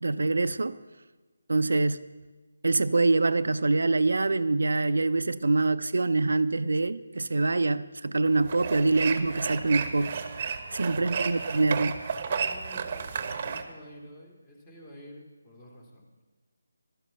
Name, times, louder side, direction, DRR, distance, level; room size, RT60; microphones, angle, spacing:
voice 1, 0.0-0.8 1.5-2.1 2.6-10.2 10.8-12.0, right 3 dB, 70° right, 0.4 m, -25 dB
sound 1, 8.3-13.6, right 6 dB, 35° right, 1.0 m, -32 dB
voice 2, 10.7-11.2 12.3-16.2, equal, 20° left, 2.6 m, -49 dB
12.0 x 12.0 x 5.6 m
figure-of-eight pair, 155°, 0 cm